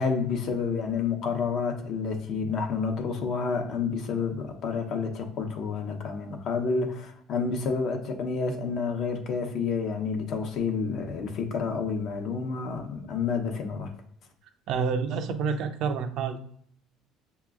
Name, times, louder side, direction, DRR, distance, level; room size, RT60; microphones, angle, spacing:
voice 1, 0.0-13.9, left 5 dB, 50° left, 0.8 m, -29 dB
voice 2, 14.7-16.4, right 5 dB, 60° right, 0.6 m, -28 dB
6.6 x 2.9 x 2.4 m
cardioid pair, 135°, 0 cm